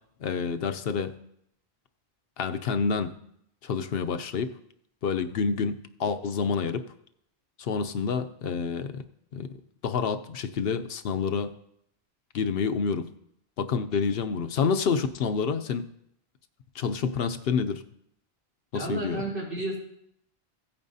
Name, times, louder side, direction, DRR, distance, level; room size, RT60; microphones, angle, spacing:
voice 1, 0.2-1.2 2.4-3.2 3.6-4.5 5.0-6.8 7.6-9.0 9.3-9.5 9.8-11.5 12.3-13.1 13.6-15.9 16.7-17.8 18.7-19.2, left 5 dB, 70° left, 9 dB, 0.8 m, -28 dB
voice 2, 18.7-19.8, right 1 dB, 90° right, -5 dB, 4.2 m, -32 dB
16.0 x 8.8 x 2.7 m, 0.74 s
omnidirectional pair, 1.0 m